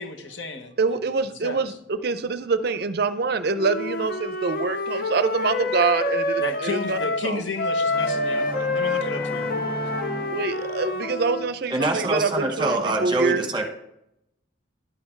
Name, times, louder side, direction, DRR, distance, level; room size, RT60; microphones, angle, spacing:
voice 1, 0.0-1.8 5.6-5.7 6.4-9.8, left 3 dB, 70° left, 5 dB, 1.3 m, -33 dB
voice 2, 0.8-7.4 10.3-13.5, right 4 dB, 50° right, 13 dB, 0.5 m, -25 dB
Wind instrument woodwind instrument, 3.6-7.3 7.6-11.5, left 2 dB, 45° left, 0.7 m, -27 dB
sound 1, 7.9-11.2, equal, ahead, 0.9 m, -35 dB
voice 3, 11.7-13.7, right 2 dB, 25° right, 4 dB, 1.2 m, -24 dB
11.0 x 6.7 x 4.5 m, 0.79 s
head